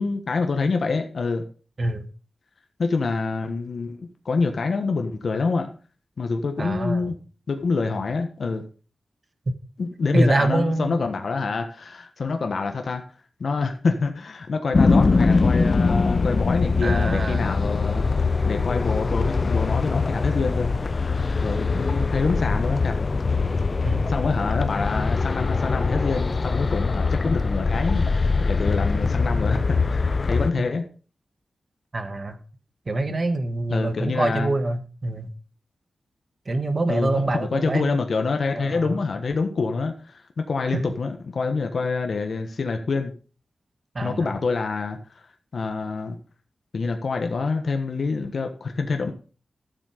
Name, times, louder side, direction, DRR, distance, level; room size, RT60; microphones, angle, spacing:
voice 1, 0.0-1.5 2.8-5.7 6.2-7.1 7.5-8.6 9.8-13.0 13.4-18.1 18.4-20.8 21.4-23.0 24.1-30.9 33.1-33.2 33.7-34.5 36.9-43.1 44.0-45.3 45.5-46.2 46.7-49.1, left 4 dB, 65° left, 5 dB, 1.2 m, -26 dB
voice 2, 6.6-7.1 10.1-11.0 16.8-17.5 23.8-24.1 31.9-32.4 32.9-35.3 36.5-38.0 38.5-39.0 40.7-40.8 43.9-44.3, right 2 dB, 40° right, 8 dB, 1.5 m, -25 dB
sound 1, 14.7-30.5, left 4 dB, 45° left, 0.7 m, -22 dB
12.5 x 7.7 x 5.0 m, 0.40 s
wide cardioid pair, 85°, 0 cm